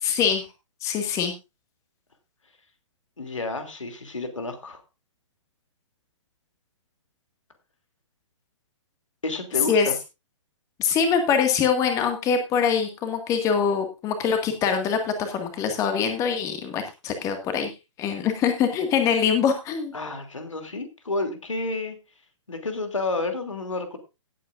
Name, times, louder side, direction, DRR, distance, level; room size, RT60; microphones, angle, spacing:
voice 1, 0.0-0.5 0.8-1.3 9.7-9.9 10.8-17.7 18.0-19.9, left 6 dB, 20° left, 6 dB, 1.9 m, -23 dB
voice 2, 3.2-4.8 9.2-10.0 19.9-22.0 22.5-24.0, left 2 dB, 75° left, 6 dB, 2.9 m, -30 dB
18.0 x 8.6 x 2.5 m, 0.26 s
figure-of-eight pair, 125°, 16 cm